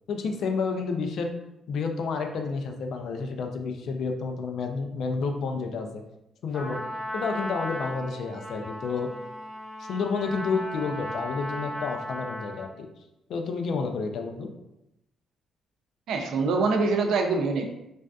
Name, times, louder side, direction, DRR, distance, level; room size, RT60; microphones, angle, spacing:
voice 1, 0.1-1.3 1.7-6.0 6.4-6.8 7.1-9.1 9.9-12.9 13.3-14.5, left 4 dB, 70° left, 4 dB, 0.3 m, -30 dB
Trumpet, 6.5-12.8, equal, 10° left, 1.1 m, -36 dB
voice 2, 16.1-17.7, right 4 dB, 75° right, 3 dB, 0.4 m, -24 dB
2.5 x 2.2 x 2.2 m, 0.87 s
cardioid pair, 90°, 0 cm